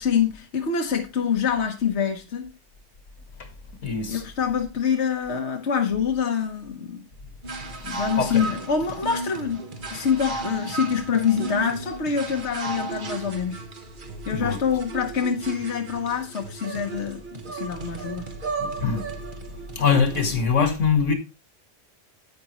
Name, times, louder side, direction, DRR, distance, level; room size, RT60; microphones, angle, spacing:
voice 1, 0.0-2.5 4.1-7.0 7.8-9.6 9.9-13.6 14.3-18.3, left 7 dB, 65° left, 1.4 m, -25 dB
voice 2, 3.8-4.2 8.2-8.4 14.3-14.6 18.6-19.0 19.8-21.1, left 5 dB, 85° left, 2.0 m, -22 dB
sound 1, 7.4-20.5, right 3 dB, 45° right, 1.2 m, -35 dB
10.5 x 8.5 x 3.0 m
omnidirectional pair, 1.2 m